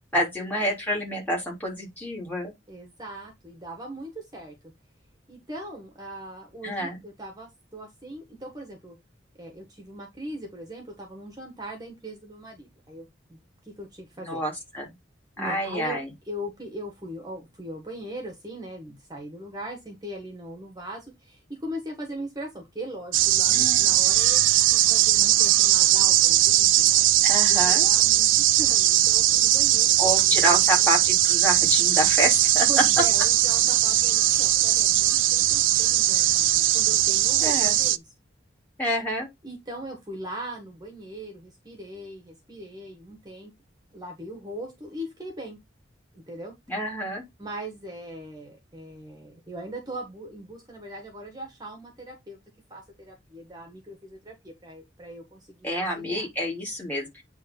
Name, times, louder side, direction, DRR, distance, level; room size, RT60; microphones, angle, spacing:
voice 1, 0.1-2.5 6.6-7.0 14.2-14.9 15.4-16.1 23.5-24.0 27.2-27.9 30.0-32.8 37.4-37.8 38.8-39.3 46.7-47.2 55.6-57.2, equal, 10° left, 3.2 m, -27 dB
voice 2, 2.7-4.7 5.3-9.0 9.4-14.4 15.4-16.0 16.3-24.4 24.7-27.1 27.5-28.3 28.6-30.9 32.7-38.0 39.4-43.5 43.9-45.6 46.1-46.5 47.4-52.4 52.7-56.3, right 1 dB, 20° right, 1.6 m, -40 dB
sound 1, 23.1-38.0, right 14 dB, 85° right, 0.5 m, -20 dB
8.8 x 3.5 x 5.3 m
head